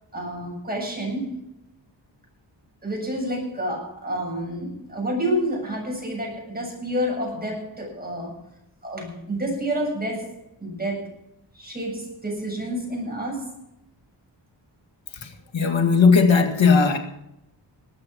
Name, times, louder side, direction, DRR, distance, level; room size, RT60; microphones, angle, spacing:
voice 1, 0.1-1.4 2.8-8.4 8.8-11.1 11.5-13.5, equal, 20° right, -1 dB, 7.6 m, -29 dB
voice 2, 15.2-17.0, left 5 dB, 80° left, 5 dB, 2.1 m, -18 dB
20.0 x 9.0 x 6.2 m, 0.84 s
wide cardioid pair, 115°, 45 cm